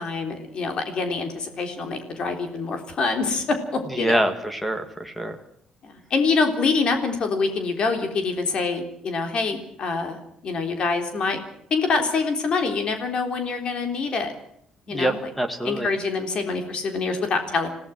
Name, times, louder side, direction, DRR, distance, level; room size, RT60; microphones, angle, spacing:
voice 1, 0.0-4.2 5.8-10.2 10.4-11.4 11.7-14.3 14.9-15.2 15.6-17.7, left 4 dB, 45° left, 6 dB, 3.7 m, -25 dB
voice 2, 3.9-5.4 14.9-15.9, right 1 dB, 5° left, 8 dB, 2.1 m, -25 dB
27.0 x 17.5 x 6.1 m, 0.70 s
cardioid pair, 175°, 2 cm